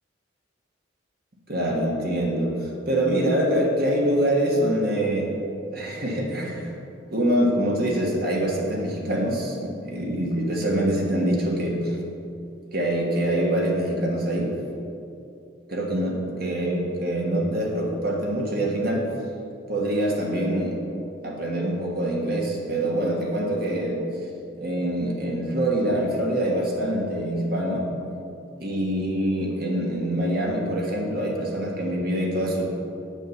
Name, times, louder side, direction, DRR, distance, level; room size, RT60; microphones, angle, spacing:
voice 1, 1.5-5.3 5.7-6.7 7.1-12.0 12.7-14.5 15.7-19.1 19.7-20.8 21.2-24.0 24.6-27.9 28.6-32.7, right 1 dB, 50° right, -1 dB, 1.5 m, -25 dB
9.0 x 5.6 x 7.8 m, 2.7 s
head